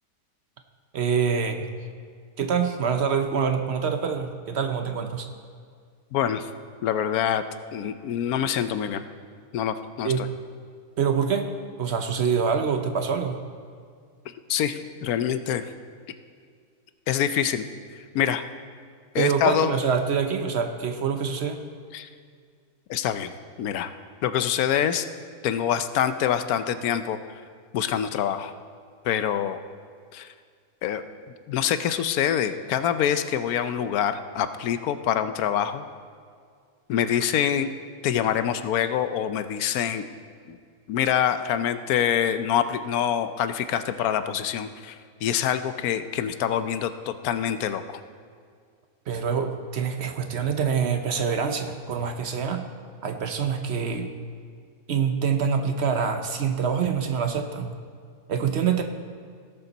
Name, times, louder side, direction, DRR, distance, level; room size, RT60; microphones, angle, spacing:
voice 1, 0.9-1.7 2.4-5.3 10.0-10.3 11.0-11.5 11.8-13.4 19.2-21.7 49.1-52.6 53.0-54.1 54.9-57.7 58.3-58.8, right 6 dB, 55° right, 6 dB, 0.8 m, -25 dB
voice 2, 6.1-6.5 6.8-7.4 7.7-9.0 9.5-10.3 14.3-15.6 17.1-17.6 17.9-18.4 19.1-19.7 21.9-22.1 22.9-23.3 23.6-23.9 24.2-25.1 25.4-27.2 27.7-28.5 29.0-29.6 30.1-30.3 30.8-31.0 31.5-35.8 36.9-37.7 38.0-40.1 40.5-40.6 40.9-48.0, left 9 dB, 75° left, 11 dB, 1.1 m, -25 dB
17.0 x 6.9 x 4.0 m, 2.1 s
omnidirectional pair, 1.6 m